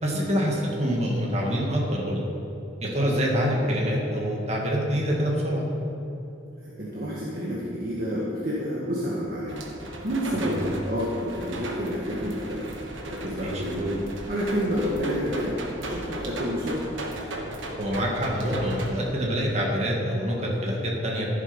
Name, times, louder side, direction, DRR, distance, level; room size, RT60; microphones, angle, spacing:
voice 1, 0.0-2.2 2.8-5.6 10.3-10.6 13.4-13.6 17.8-21.3, equal, 35° right, -2 dB, 2.1 m, -26 dB
voice 2, 6.6-9.6 10.0-12.7 13.0-16.8, equal, 50° right, -6 dB, 1.6 m, -29 dB
sound 1, 9.5-18.9, right 1 dB, 85° right, 1.5 m, -36 dB
13.5 x 7.5 x 5.4 m, 2.9 s
head